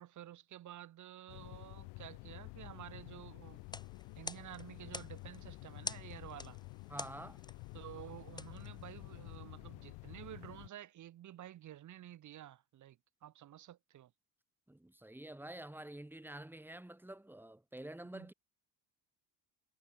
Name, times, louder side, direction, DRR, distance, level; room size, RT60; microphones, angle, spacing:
voice 1, 0.0-3.6 4.2-6.6 7.7-13.0 13.2-14.1 18.1-18.3, right 12 dB, 45° right, 0.8 m, -51 dB
sound 1, 1.3-10.7, left 26 dB, 85° left, 0.6 m, -50 dB
sound 2, 3.6-9.4, left 2 dB, 10° left, 2.5 m, -49 dB
voice 2, 6.9-7.4 14.7-18.3, right 1 dB, 5° right, 2.5 m, -48 dB
cardioid pair, 120°, 41 cm